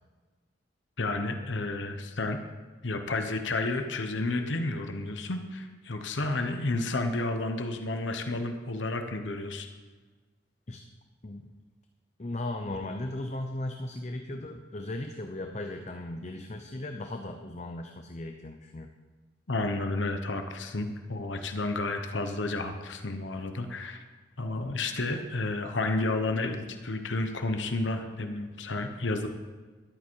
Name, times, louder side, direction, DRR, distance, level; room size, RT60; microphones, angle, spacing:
voice 1, 1.0-2.4 2.8-9.7 19.5-24.0 24.4-29.3, left 2 dB, 85° left, 6 dB, 1.1 m, -31 dB
voice 2, 12.2-18.9, left 1 dB, 35° left, 5 dB, 0.7 m, -37 dB
13.0 x 11.0 x 4.7 m, 1.4 s
head